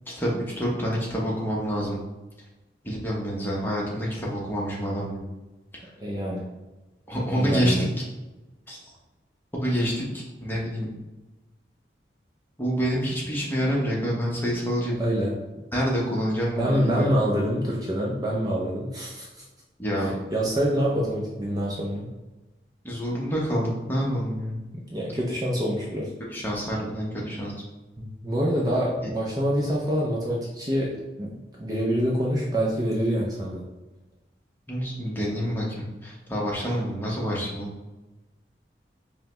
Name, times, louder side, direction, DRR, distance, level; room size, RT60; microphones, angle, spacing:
voice 1, 0.1-2.0 2.8-5.3 5.7-5.8 7.1-8.0 8.7-8.8 9.5-10.9 12.6-15.0 15.7-17.1 19.8-20.1 22.8-24.6 26.3-27.5 34.7-37.7, equal, 10° left, -4 dB, 0.8 m, -27 dB
voice 2, 6.0-6.5 7.4-7.9 15.0-15.6 16.6-19.4 20.0-22.1 24.7-26.1 28.0-31.3 31.6-33.6, equal, 20° right, -4 dB, 0.5 m, -26 dB
5.4 x 2.1 x 2.9 m, 1.1 s
head